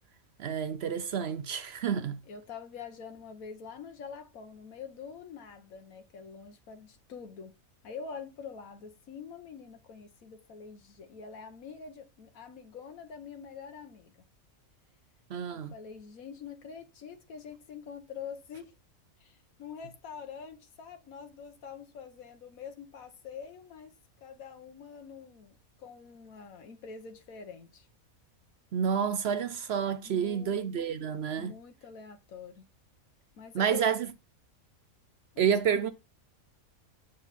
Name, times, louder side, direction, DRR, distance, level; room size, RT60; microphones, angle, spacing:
voice 1, 0.4-2.2 15.3-15.7 28.7-31.5 33.5-34.0 35.4-35.9, right 7 dB, 60° right, 0.7 m, -29 dB
voice 2, 2.3-7.5 7.8-14.1 15.5-18.7 19.2-27.9 30.0-30.7 31.4-32.7 33.3-33.9 35.3-35.5, left 6 dB, 80° left, 1.4 m, -45 dB
7.6 x 6.3 x 4.2 m
omnidirectional pair, 1.4 m